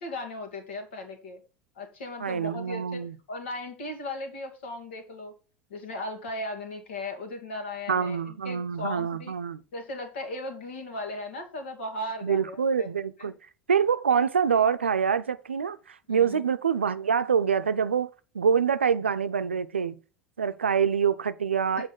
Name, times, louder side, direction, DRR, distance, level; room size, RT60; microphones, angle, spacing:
voice 1, 0.0-1.4 1.8-5.3 5.7-9.3 9.7-12.9 13.2-13.3 16.1-16.4 21.8-21.9, left 2 dB, 70° left, 2.3 m, -37 dB
voice 2, 2.2-3.1 7.9-9.6 12.2-13.3 13.7-18.1 18.3-20.0 20.4-21.9, right 7 dB, 85° right, 0.6 m, -25 dB
8.4 x 4.8 x 5.3 m
figure-of-eight pair, 75°, 6 cm